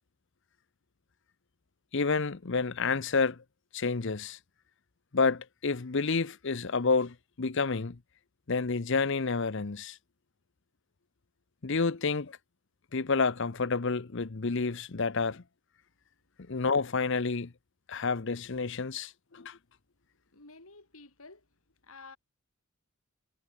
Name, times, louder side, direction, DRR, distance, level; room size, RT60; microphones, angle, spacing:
voice 1, 1.9-3.4 3.7-4.4 5.1-8.0 8.5-10.0 11.6-12.4 12.9-15.4 16.5-17.5 17.9-19.6, left 4 dB, 55° left, 0.8 m, -29 dB
voice 2, 20.3-21.5 21.8-22.2, left 3 dB, 75° left, 4.5 m, -51 dB
head